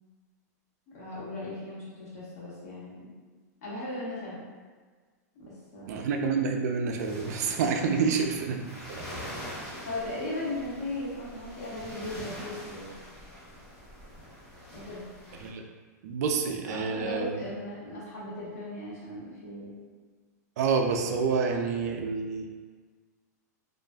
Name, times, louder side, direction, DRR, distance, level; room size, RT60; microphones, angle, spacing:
voice 1, 0.9-3.1 3.6-4.4 5.3-6.0 8.0-8.1 9.1-9.2 9.8-12.9 14.7-15.1 16.6-19.8, left 1 dB, 65° left, -7 dB, 1.2 m, -37 dB
voice 2, 5.9-9.0 15.4-15.6 16.0-17.4 20.6-22.5, right 5 dB, 70° right, 4 dB, 0.4 m, -28 dB
sound 1, 7.0-15.5, equal, 10° left, 0.7 m, -44 dB
2.6 x 2.4 x 2.2 m, 1.4 s
supercardioid pair, 145°, 9 cm